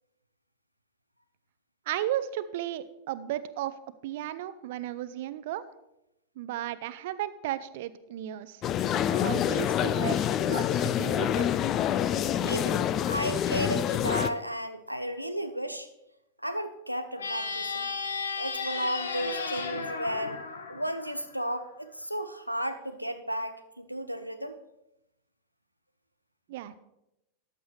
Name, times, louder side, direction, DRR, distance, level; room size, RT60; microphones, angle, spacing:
voice 1, 1.9-3.8 4.0-5.6 6.4-8.6 9.1-10.2 10.5-11.5 26.5-26.8, right 12 dB, 50° right, 14 dB, 0.6 m, -34 dB
sound 1, 8.6-14.3, left 10 dB, 30° left, 0.5 m, -27 dB
voice 2, 12.4-15.9 16.4-17.9 18.4-20.4 20.7-24.6, equal, 90° left, 10 dB, 0.8 m, -34 dB
sound 2, 17.1-21.6, left 4 dB, 70° left, 1.1 m, -34 dB
14.0 x 10.0 x 3.2 m, 0.87 s
figure-of-eight pair, 90°, 0 cm